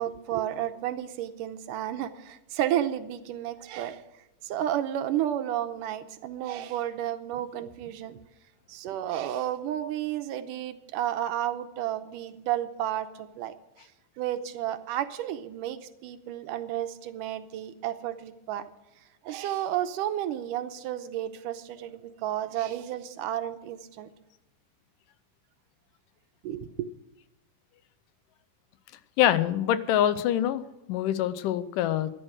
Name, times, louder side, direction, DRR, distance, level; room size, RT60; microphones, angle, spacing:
voice 1, 0.0-4.0 4.4-8.2 8.7-13.5 14.2-18.6 19.2-24.1 26.4-26.9, right 11 dB, 80° right, 9 dB, 2.2 m, -32 dB
voice 2, 29.2-30.6 30.9-32.1, left 11 dB, 80° left, 14 dB, 2.2 m, -25 dB
13.5 x 11.0 x 6.3 m, 0.94 s
omnidirectional pair, 3.9 m